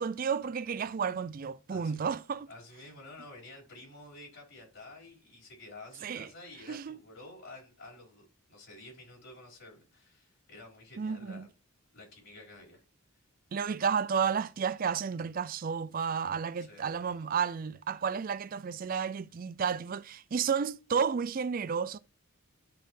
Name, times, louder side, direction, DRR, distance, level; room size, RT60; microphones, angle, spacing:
voice 1, 0.0-2.5 6.0-6.3 6.7-7.0 11.0-11.5 13.5-22.0, right 6 dB, 40° right, 0.3 m, -32 dB
voice 2, 1.7-2.2 2.5-11.5 11.9-12.8 16.6-17.2, left 2 dB, 65° left, 4.8 m, -51 dB
12.0 x 4.3 x 3.2 m
head